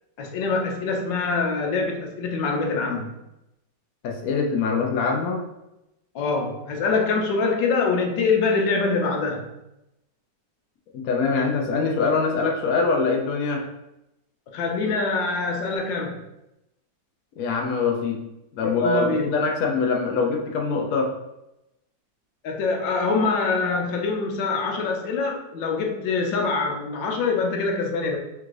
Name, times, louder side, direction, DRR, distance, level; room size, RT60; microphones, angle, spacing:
voice 1, 0.2-3.1 6.1-9.5 14.5-16.2 18.8-19.3 22.4-28.2, left 4 dB, 85° left, 2 dB, 1.4 m, -24 dB
voice 2, 4.0-5.4 10.9-13.6 17.4-18.2 18.6-21.1, left 4 dB, 65° left, 1 dB, 1.0 m, -23 dB
3.7 x 2.5 x 4.6 m, 0.90 s
omnidirectional pair, 2.0 m